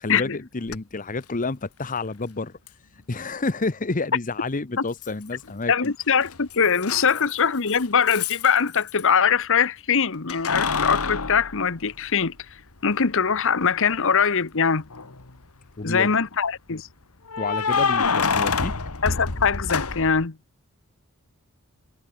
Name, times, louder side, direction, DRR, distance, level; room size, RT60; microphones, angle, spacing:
voice 1, 0.0-2.6 3.1-5.9 7.1-7.2 15.8-16.2 17.4-18.7, left 3 dB, 35° left, 0.9 m, -29 dB
Keys jangling, 0.7-0.8 2.7-2.8 5.0-5.6 5.8-9.0 10.3-12.4 12.9-13.0 14.8-15.3 17.3-20.3, left 5 dB, 85° left, 1.9 m, -27 dB
voice 2, 5.7-12.3 12.8-14.9 15.8-16.9 19.0-20.4, left 6 dB, 65° left, 1.1 m, -22 dB
head